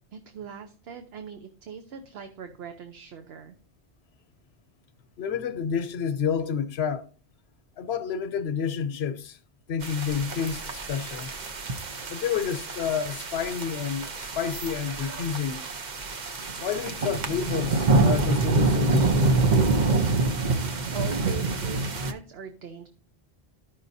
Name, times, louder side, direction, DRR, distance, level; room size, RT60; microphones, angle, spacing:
voice 1, 0.1-3.5 20.9-22.9, right 7 dB, 70° right, 1.0 m, -40 dB
voice 2, 5.2-7.1 7.8-9.4 9.7-11.3 12.1-15.6 16.6-19.4, left 7 dB, 75° left, 0.9 m, -29 dB
sound 1, 9.8-22.1, right 3 dB, 45° right, 0.9 m, -26 dB
13.5 x 5.7 x 2.6 m
omnidirectional pair, 1.1 m